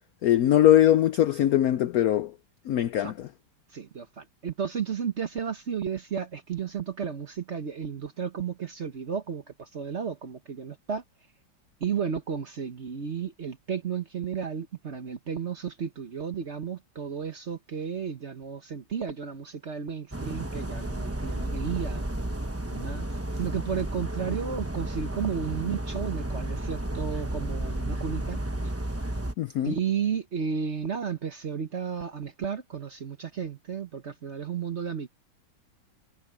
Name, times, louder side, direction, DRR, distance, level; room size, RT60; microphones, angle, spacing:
voice 1, 0.2-2.3 2.7-3.3 29.4-29.7, left 12 dB, 85° left, 0.8 m, -21 dB
voice 2, 3.7-11.0 11.8-22.0 22.7-23.1 23.3-28.7 29.6-35.1, right 7 dB, 45° right, 1.0 m, -33 dB
sound 1, 20.1-29.3, right 1 dB, 10° right, 0.7 m, -32 dB
omnidirectional pair, 2.2 m